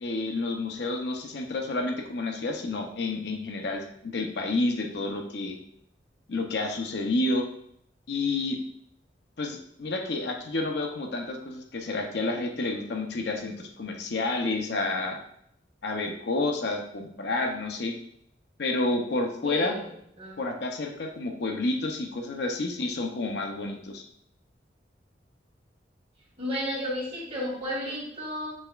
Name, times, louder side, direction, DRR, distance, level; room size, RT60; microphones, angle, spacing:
voice 1, 0.0-5.6 6.3-7.5 8.1-8.6 9.4-15.2 15.8-18.0 18.6-19.8 20.4-24.0, left 2 dB, 65° left, 3 dB, 0.6 m, -30 dB
voice 2, 19.4-20.4 26.4-28.5, equal, 35° right, -5 dB, 1.7 m, -33 dB
6.3 x 3.3 x 2.3 m, 0.71 s
head